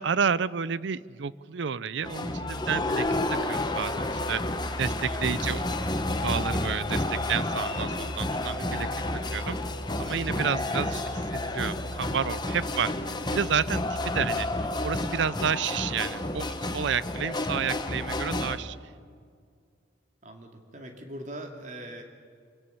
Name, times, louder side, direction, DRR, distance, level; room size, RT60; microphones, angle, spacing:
voice 1, 0.0-4.4 4.8-5.6 6.2-8.9 9.3-9.6 10.0-12.9 13.3-18.8, right 7 dB, 75° right, 19 dB, 0.5 m, -30 dB
sound 1, 2.0-18.6, left 2 dB, 25° left, 1.1 m, -30 dB
sound 2, 2.1-14.0, left 1 dB, 55° left, 3.3 m, -45 dB
voice 2, 18.2-18.6 20.2-22.0, right 1 dB, 40° right, 4 dB, 2.4 m, -42 dB
25.5 x 17.0 x 6.9 m, 2.1 s
head